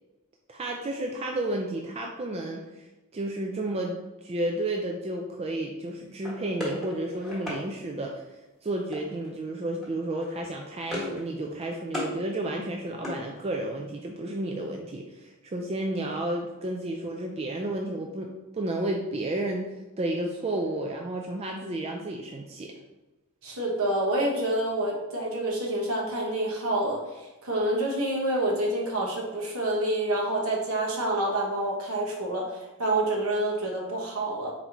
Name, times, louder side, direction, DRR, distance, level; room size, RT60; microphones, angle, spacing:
voice 1, 0.5-2.9 3.1-8.2 8.6-22.7, right 1 dB, 30° right, 1 dB, 0.3 m, -32 dB
sound 1, 6.2-7.6 8.9-9.3 9.6-9.9 10.2-11.2 11.5-12.1 12.5-13.8, left 1 dB, ahead, 1.3 m, -37 dB
voice 2, 23.4-34.5, right 1 dB, 70° right, -1 dB, 1.1 m, -28 dB
4.3 x 3.9 x 2.9 m, 1.1 s
head